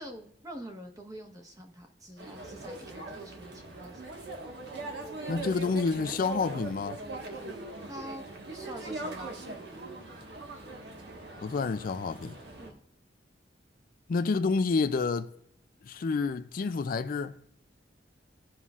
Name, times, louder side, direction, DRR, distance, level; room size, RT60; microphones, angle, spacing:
voice 1, 0.0-4.1 7.9-9.4 12.6-12.8, equal, 20° right, 1.2 m, -45 dB
sound 1, 2.2-12.7, right 2 dB, 65° right, 1.5 m, -41 dB
voice 2, 5.3-7.0 11.4-12.4 14.1-15.3 15.9-17.3, left 4 dB, 50° left, 0.4 m, -29 dB
15.5 x 5.6 x 2.4 m
head